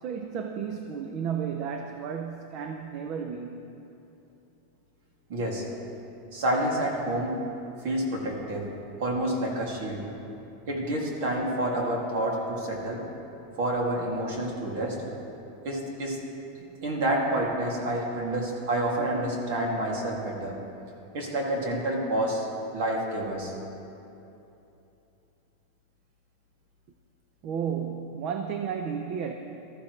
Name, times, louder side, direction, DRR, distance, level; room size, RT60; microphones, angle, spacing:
voice 1, 0.0-3.7 27.4-29.3, right 7 dB, 35° right, 5 dB, 0.5 m, -33 dB
voice 2, 5.3-5.6 6.3-7.3 7.8-8.7 9.0-10.0 10.7-13.0 13.6-15.0 15.6-16.2 16.5-20.6 21.1-22.5 22.7-23.5, right 1 dB, 55° right, -1 dB, 2.5 m, -28 dB
18.0 x 13.5 x 3.2 m, 2.9 s
supercardioid pair, 170°, 0 cm